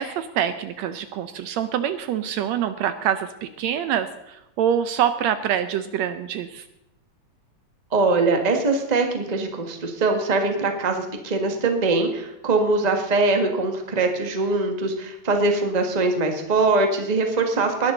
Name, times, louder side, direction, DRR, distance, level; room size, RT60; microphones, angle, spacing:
voice 1, 0.0-6.7, right 9 dB, 75° right, 11 dB, 1.8 m, -25 dB
voice 2, 7.9-17.9, right 3 dB, 20° right, 4 dB, 1.2 m, -22 dB
20.0 x 12.0 x 3.9 m, 0.89 s
omnidirectional pair, 3.4 m